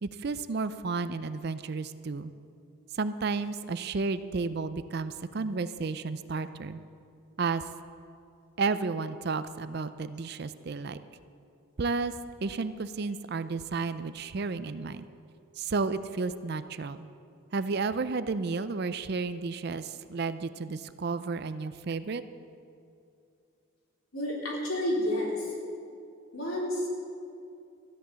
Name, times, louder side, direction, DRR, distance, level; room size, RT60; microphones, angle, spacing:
voice 1, 0.0-2.3 2.9-6.8 7.4-7.6 8.6-11.0 11.8-12.1 12.4-15.0 15.6-17.1 17.5-22.2, right 4 dB, 50° right, 12 dB, 0.4 m, -32 dB
voice 2, 24.1-25.5 26.3-26.9, left 1 dB, 75° left, -3 dB, 3.6 m, -30 dB
13.5 x 10.5 x 6.9 m, 2.5 s
head